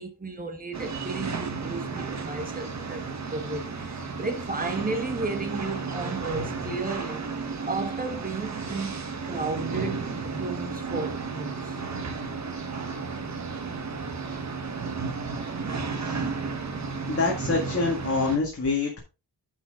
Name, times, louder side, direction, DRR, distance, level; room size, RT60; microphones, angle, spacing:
voice 1, 0.0-11.8 15.4-15.7, right 3 dB, 20° right, 1.5 m, -34 dB
sound 1, 0.7-18.4, right 4 dB, 45° right, 1.4 m, -33 dB
voice 2, 13.2-13.7 15.9-16.3 17.1-19.0, left 3 dB, 35° left, 2.0 m, -27 dB
10.5 x 5.7 x 3.8 m
wide cardioid pair, 180°, 40 cm